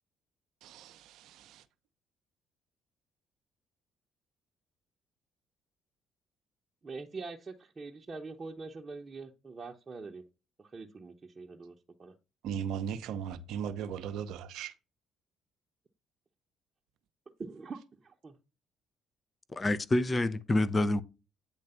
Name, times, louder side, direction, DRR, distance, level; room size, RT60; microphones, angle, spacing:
voice 1, 0.6-1.6 12.4-14.7, right 8 dB, 70° right, 0.7 m, -37 dB
voice 2, 6.8-10.2 10.6-12.1 17.4-18.4, right 4 dB, 35° right, 0.9 m, -44 dB
voice 3, 19.5-21.0, left 1 dB, 30° left, 0.7 m, -27 dB
8.7 x 3.3 x 5.6 m
hypercardioid pair, 55°, 0 cm